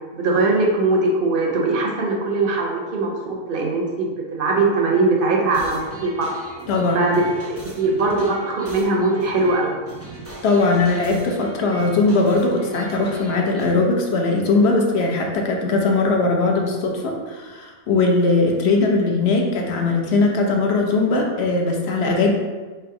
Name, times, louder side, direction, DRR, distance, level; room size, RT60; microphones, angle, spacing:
voice 1, 0.1-6.3 6.9-9.7, right 3 dB, 50° right, 0 dB, 0.8 m, -21 dB
sound 1, 5.5-13.7, right 3 dB, 15° right, 0.4 m, -38 dB
voice 2, 6.7-7.1 10.4-22.3, left 3 dB, 60° left, 1 dB, 0.8 m, -20 dB
3.4 x 3.0 x 4.7 m, 1.4 s
omnidirectional pair, 1.4 m